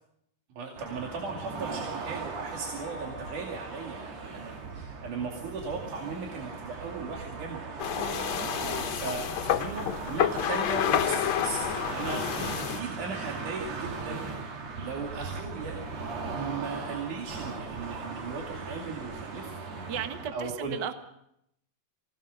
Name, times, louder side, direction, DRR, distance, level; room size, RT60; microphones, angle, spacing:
voice 1, 0.6-7.6 8.9-12.3 12.5-15.8 16.3-19.5 20.3-20.8, right 4 dB, 90° right, -1 dB, 4.0 m, -37 dB
sound 1, 0.8-20.3, right 4 dB, 60° right, 3.2 m, -38 dB
sound 2, 2.5-5.6, left 3 dB, 5° left, 3.0 m, -49 dB
sound 3, 7.8-12.8, left 10 dB, 70° left, 2.0 m, -29 dB
voice 2, 8.0-8.8 19.9-20.9, right 8 dB, 45° right, 7 dB, 1.7 m, -37 dB
24.5 x 18.5 x 6.5 m, 0.77 s
omnidirectional pair, 3.5 m